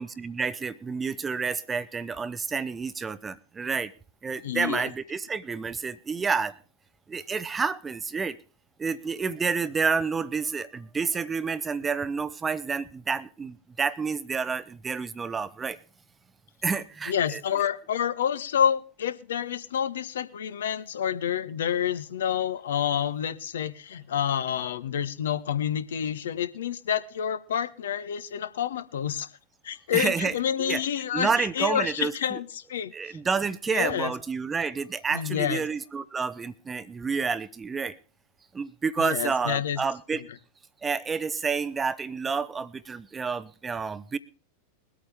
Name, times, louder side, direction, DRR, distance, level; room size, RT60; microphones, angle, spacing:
voice 1, 0.0-3.9 4.2-6.5 7.1-8.4 8.8-15.8 16.6-17.4 29.9-30.8 31.1-32.4 32.9-38.0 38.5-40.2 40.8-44.2, right 5 dB, 15° right, 17 dB, 0.8 m, -29 dB
voice 2, 4.4-4.9 17.1-29.3 29.6-33.2 33.7-34.1 35.1-35.6 39.0-39.8, left 9 dB, 60° left, 12 dB, 1.1 m, -28 dB
22.5 x 8.7 x 3.5 m, 0.37 s
figure-of-eight pair, 90°, 0 cm